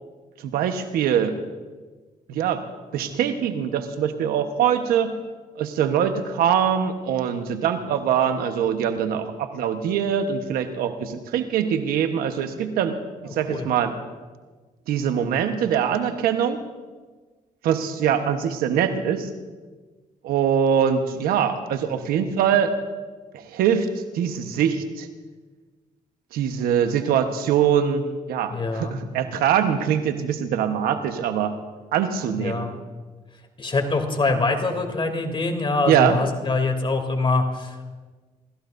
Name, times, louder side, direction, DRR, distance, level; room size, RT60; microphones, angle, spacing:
voice 1, 0.4-1.4 2.3-2.6 2.9-5.2 5.6-13.0 13.2-13.9 14.9-16.6 17.6-19.3 20.2-22.7 23.3-23.9 24.1-25.1 26.3-31.5 31.9-32.7 35.9-36.2, right 8 dB, 90° right, 7 dB, 1.1 m, -23 dB
voice 2, 13.2-13.7 28.5-29.0 32.3-32.8 33.6-37.8, left 3 dB, 35° left, 4 dB, 3.0 m, -24 dB
28.0 x 14.5 x 2.6 m, 1.3 s
supercardioid pair, 60°, 15 cm